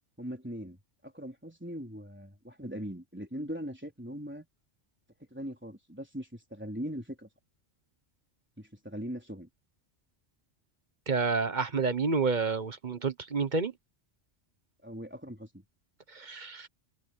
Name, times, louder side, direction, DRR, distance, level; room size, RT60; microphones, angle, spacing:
voice 1, 0.2-0.8 1.1-4.5 5.3-7.3 8.6-9.5 14.8-15.6, equal, 10° right, 4.1 m, -40 dB
voice 2, 11.1-13.7 16.1-16.7, right 4 dB, 40° right, 1.2 m, -29 dB
omnidirectional pair, 1.2 m